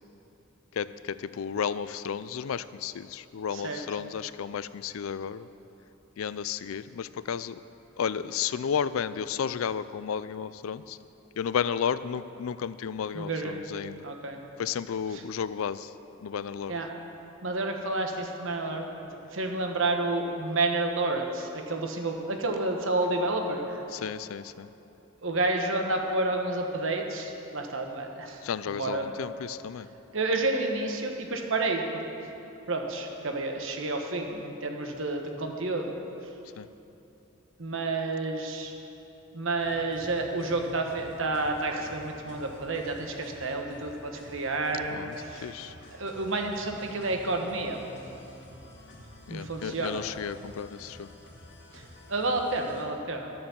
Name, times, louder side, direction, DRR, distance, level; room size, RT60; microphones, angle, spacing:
voice 1, 0.7-5.5 6.2-7.6 8.0-11.0 11.4-14.0 14.6-15.9 16.2-16.8 23.9-24.7 28.4-29.9 36.6-36.7 44.9-45.7 49.3-51.1, left 7 dB, 80° left, 15 dB, 0.4 m, -33 dB
voice 2, 3.5-3.8 13.1-13.5 14.0-14.4 15.1-15.2 16.7-16.9 17.4-18.8 19.3-23.8 25.2-28.4 28.7-29.2 30.1-32.0 32.7-36.0 37.6-38.7 39.3-45.5 45.9-47.8 49.3-50.0 51.7-51.8 52.1-53.3, right 2 dB, 70° right, 3 dB, 1.2 m, -30 dB
sound 1, 39.6-52.8, left 1 dB, 60° left, 2.1 m, -50 dB
12.0 x 7.5 x 7.0 m, 2.9 s
head